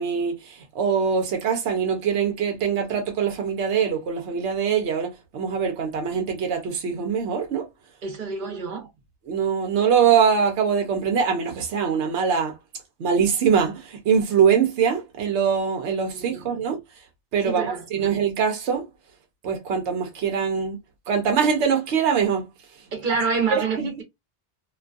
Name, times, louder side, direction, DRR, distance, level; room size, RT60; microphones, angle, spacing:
voice 1, 0.0-7.7 9.3-12.5 13.0-16.8 17.3-18.9 19.4-20.8 21.1-22.5 23.5-23.9, right 7 dB, 85° right, 1.0 m, -23 dB
voice 2, 8.0-8.9 16.1-16.5 17.5-18.1 22.9-24.0, right 5 dB, 50° right, 1.0 m, -27 dB
2.5 x 2.3 x 2.4 m
omnidirectional pair, 1.1 m